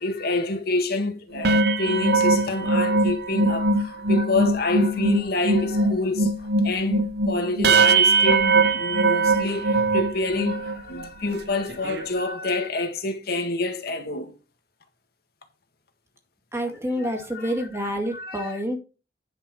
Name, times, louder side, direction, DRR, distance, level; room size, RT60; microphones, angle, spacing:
voice 1, 0.0-14.3 17.0-17.2 18.1-18.5, left 2 dB, 60° left, 1.8 m, -27 dB
sound 1, 1.3-10.8 11.3-11.4 11.7-12.0, right 3 dB, 65° right, 0.9 m, -21 dB
voice 2, 16.5-18.8, equal, 15° right, 2.3 m, -28 dB
10.5 x 5.6 x 4.6 m
head